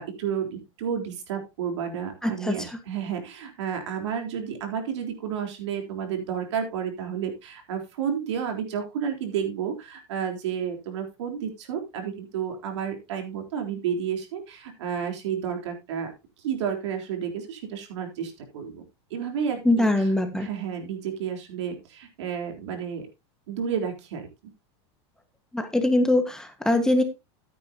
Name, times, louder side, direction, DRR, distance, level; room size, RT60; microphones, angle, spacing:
voice 1, 0.0-16.1 16.4-18.8 19.1-19.9 20.3-23.1 23.5-24.2, right 7 dB, 80° right, 4 dB, 3.8 m, -31 dB
voice 2, 2.2-2.5 19.6-20.5 25.5-27.0, left 1 dB, 5° left, 6 dB, 1.5 m, -22 dB
14.0 x 9.2 x 2.9 m, 0.25 s
supercardioid pair, 140°, 15 cm